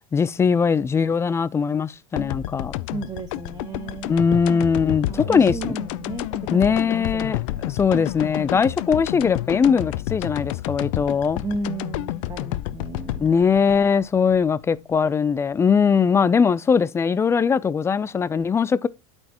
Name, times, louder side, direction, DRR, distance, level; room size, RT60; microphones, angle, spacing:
voice 1, 0.1-2.7 4.1-5.8 6.5-7.4 7.6-11.4 13.2-18.9, left 6 dB, 15° left, 0.4 m, -20 dB
sound 1, 2.2-15.0, left 16 dB, 70° left, 0.5 m, -30 dB
voice 2, 2.9-4.1 5.1-7.5 11.4-13.3, right 3 dB, 20° right, 1.0 m, -34 dB
12.0 x 4.4 x 3.0 m
supercardioid pair, 120°, 17 cm